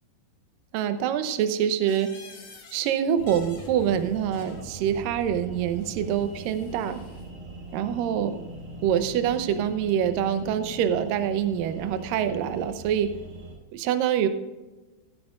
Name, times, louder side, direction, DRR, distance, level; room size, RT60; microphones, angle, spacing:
voice 1, 0.7-2.1 2.7-7.0 7.7-8.4 8.8-13.1 13.7-14.3, right 9 dB, 75° right, 9 dB, 2.2 m, -25 dB
sound 1, 1.9-2.9 3.2-4.7 5.7-7.3, left 4 dB, 60° left, 3.5 m, -50 dB
sound 2, 3.1-13.6, right 2 dB, 60° right, 4.2 m, -41 dB
16.0 x 12.0 x 2.5 m, 1.2 s
omnidirectional pair, 4.6 m